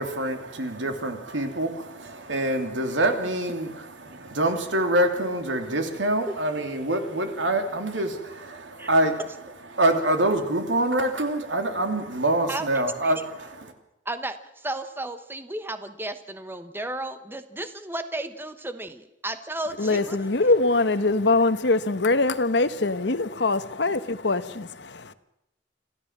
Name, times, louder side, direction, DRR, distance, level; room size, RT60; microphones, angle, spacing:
voice 1, 0.0-9.2 9.7-13.7, right 1 dB, 80° right, 3.0 m, -25 dB
voice 2, 12.5-13.1 14.0-20.2, right 1 dB, 10° right, 1.1 m, -34 dB
voice 3, 19.8-24.7 25.0-25.1, left 3 dB, 65° left, 1.1 m, -23 dB
26.5 x 14.5 x 7.4 m
head